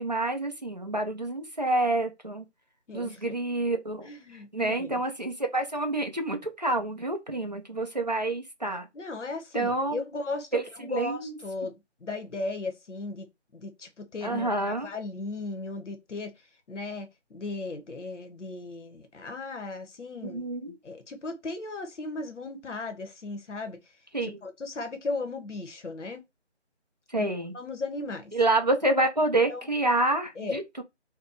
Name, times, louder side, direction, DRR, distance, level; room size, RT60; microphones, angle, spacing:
voice 1, 0.0-2.4 2.9-4.1 4.5-8.9 9.5-10.0 10.5-11.4 14.2-14.9 20.2-20.7 24.1-24.4 27.1-27.5 28.3-30.8, right 2 dB, 35° right, 0.5 m, -28 dB
voice 2, 2.9-3.3 4.0-5.0 8.9-20.4 20.8-24.0 24.2-26.2 27.2-28.3 29.5-29.7 30.4-30.6, left 3 dB, 75° left, 0.9 m, -37 dB
2.8 x 2.1 x 3.7 m
figure-of-eight pair, 165°, 36 cm